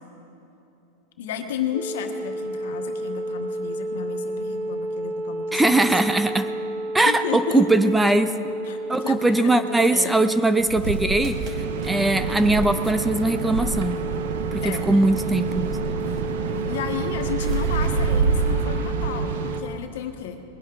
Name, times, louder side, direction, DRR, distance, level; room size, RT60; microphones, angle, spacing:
voice 1, 1.2-5.9 7.0-7.9 8.6-10.2 14.6-14.9 16.6-20.4, left 8 dB, 75° left, 5 dB, 1.4 m, -33 dB
sound 1, 1.7-19.8, right 1 dB, 25° right, 1.4 m, -32 dB
voice 2, 5.5-6.5 6.9-8.3 8.9-11.4 11.8-14.0 14.5-15.7, right 2 dB, 5° right, 11 dB, 0.5 m, -20 dB
sound 2, 10.2-18.6, right 2 dB, 40° right, 1.9 m, -39 dB
sound 3, 10.6-19.6, right 5 dB, 75° right, 1.0 m, -27 dB
21.0 x 10.5 x 3.9 m, 2.9 s
supercardioid pair, 135°, 0 cm